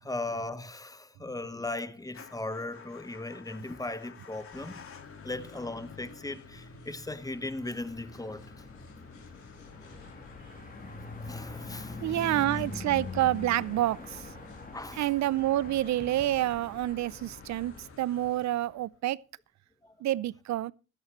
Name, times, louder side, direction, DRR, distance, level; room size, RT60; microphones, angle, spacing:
voice 1, 0.0-4.8 5.2-8.6 11.2-12.6 14.7-15.1 19.8-19.9, left 2 dB, 10° left, 1.1 m, -38 dB
sound 1, 1.4-18.6, left 5 dB, 80° left, 4.4 m, -66 dB
Motor vehicle (road) / Engine starting / Idling, 2.1-19.0, left 5 dB, 45° left, 1.9 m, -51 dB
sound 2, 7.8-17.9, left 3 dB, 30° left, 3.0 m, -43 dB
voice 2, 12.0-14.3 15.0-19.2 20.0-20.7, right 14 dB, 65° right, 0.6 m, -28 dB
16.5 x 12.5 x 3.1 m
cardioid pair, 90°, 30 cm